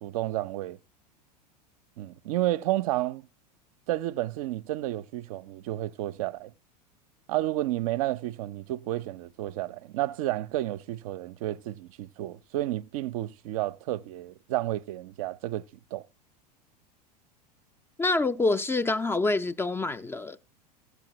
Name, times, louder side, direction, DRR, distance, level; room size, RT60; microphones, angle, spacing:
voice 1, 0.0-0.8 2.0-3.2 3.9-6.5 7.3-15.7 15.9-16.0, right 15 dB, 55° right, 0.5 m, -31 dB
voice 2, 18.0-20.4, left 3 dB, 10° left, 0.4 m, -26 dB
15.0 x 7.9 x 2.9 m
figure-of-eight pair, 85°, 21 cm